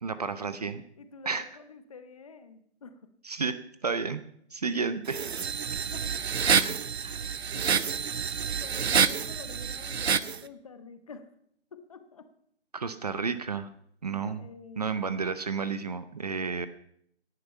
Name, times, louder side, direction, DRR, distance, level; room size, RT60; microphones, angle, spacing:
voice 1, 0.0-0.8 1.3-1.5 3.2-4.2 4.5-5.2 6.4-7.4 12.7-13.7 14.0-14.5 14.8-16.7, right 5 dB, 35° right, 13 dB, 0.7 m, -32 dB
voice 2, 1.0-3.1 5.1-5.3 5.9-6.4 7.5-7.8 8.6-11.3 11.7-12.3 14.4-15.1, left 4 dB, 30° left, 10 dB, 1.0 m, -48 dB
sound 1, 5.1-10.4, right 6 dB, 65° right, 0.8 m, -28 dB
16.5 x 10.5 x 5.5 m, 0.68 s
figure-of-eight pair, 160°, 34 cm